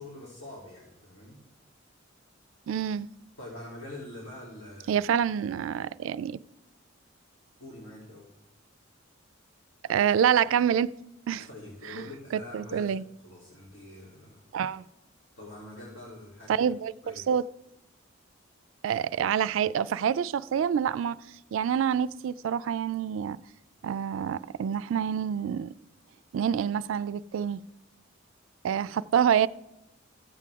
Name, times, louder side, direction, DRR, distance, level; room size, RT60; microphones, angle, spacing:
voice 1, 0.0-1.4 3.4-5.1 7.6-8.3 11.3-12.9 13.2-14.4 15.4-16.6 17.0-17.3, left 1 dB, 70° left, 3.2 m, -44 dB
voice 2, 2.7-3.1 4.9-6.4 9.9-10.9 11.3-11.5 11.9-12.0 12.3-13.0 14.5-14.8 16.5-17.4 18.8-21.2 21.5-23.4 23.8-25.7 26.3-27.6 28.6-29.5, right 8 dB, 75° right, 0.3 m, -27 dB
15.0 x 7.6 x 3.6 m
head